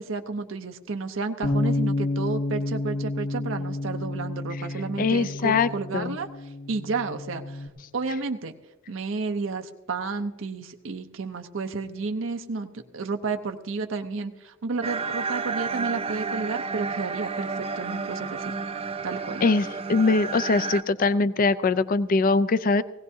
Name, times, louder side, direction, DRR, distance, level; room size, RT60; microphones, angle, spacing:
voice 1, 0.0-7.7 7.9-8.5 8.9-18.5 19.0-19.4, right 4 dB, 70° right, 6 dB, 0.7 m, -32 dB
Bass guitar, 1.4-7.7, left 2 dB, 75° left, 1.6 m, -30 dB
voice 2, 5.0-6.2 19.4-22.8, left 3 dB, 45° left, 14 dB, 0.4 m, -22 dB
sound 1, 14.8-20.8, right 4 dB, 30° right, 0.5 m, -31 dB
20.0 x 16.5 x 2.7 m, 1.2 s
head